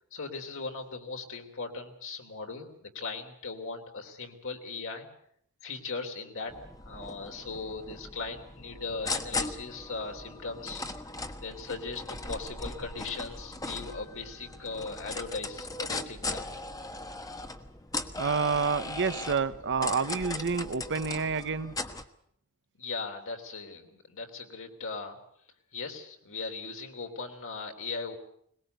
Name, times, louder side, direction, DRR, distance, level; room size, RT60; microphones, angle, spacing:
voice 1, 0.1-5.1 5.6-6.5 6.8-10.9 11.4-16.4 22.8-25.2 25.7-28.2, left 4 dB, 60° left, 4 dB, 3.3 m, -38 dB
sound 1, 6.5-22.0, left 2 dB, 15° left, 1.3 m, -38 dB
voice 2, 18.2-21.7, right 5 dB, 55° right, 12 dB, 1.0 m, -29 dB
22.0 x 20.5 x 8.1 m, 0.68 s
head